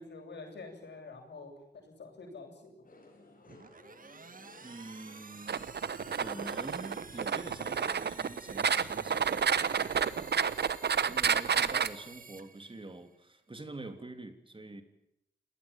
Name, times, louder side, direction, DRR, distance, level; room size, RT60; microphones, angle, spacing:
voice 1, 0.0-2.8, left 3 dB, 80° left, 3 dB, 8.0 m, -47 dB
sound 1, 2.8-10.3, left 2 dB, 50° left, 8.0 m, -56 dB
sound 2, 3.4-13.2, right 4 dB, 50° right, 1.9 m, -51 dB
voice 2, 4.6-5.7 6.2-10.4 11.0-14.8, right 2 dB, 30° right, 8 dB, 3.3 m, -46 dB
sound 3, 5.5-11.9, right 7 dB, 70° right, 1.1 m, -30 dB
29.0 x 19.0 x 7.4 m, 0.79 s
cardioid pair, 65°, 18 cm